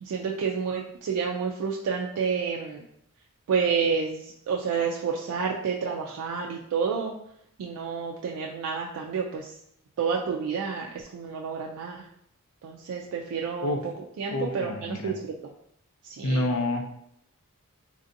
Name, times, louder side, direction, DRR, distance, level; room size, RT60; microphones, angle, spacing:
voice 1, 0.0-2.8 3.5-7.1 7.6-9.5 10.0-12.0 12.6-13.8 14.2-15.2 16.0-16.4, right 6 dB, 85° right, -1 dB, 0.3 m, -29 dB
voice 2, 14.3-15.2 16.2-16.8, left 2 dB, 75° left, 4 dB, 0.5 m, -28 dB
3.3 x 2.6 x 2.5 m, 0.72 s
head